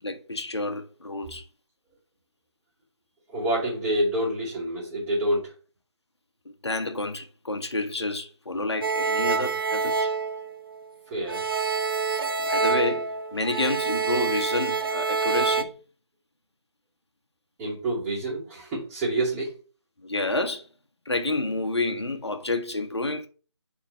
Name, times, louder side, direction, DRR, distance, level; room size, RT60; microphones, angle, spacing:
voice 1, 0.0-1.5 6.4-10.1 12.4-15.7 20.0-20.7 21.0-23.3, left 2 dB, 70° left, 1.3 m, -29 dB
voice 2, 3.3-5.5 11.1-11.5 17.6-19.6, right 1 dB, 10° right, 2.6 m, -27 dB
sound 1, 8.8-11.0 11.3-15.6, right 5 dB, 55° right, 0.7 m, -27 dB
8.3 x 3.7 x 4.5 m
figure-of-eight pair, 155°, 15 cm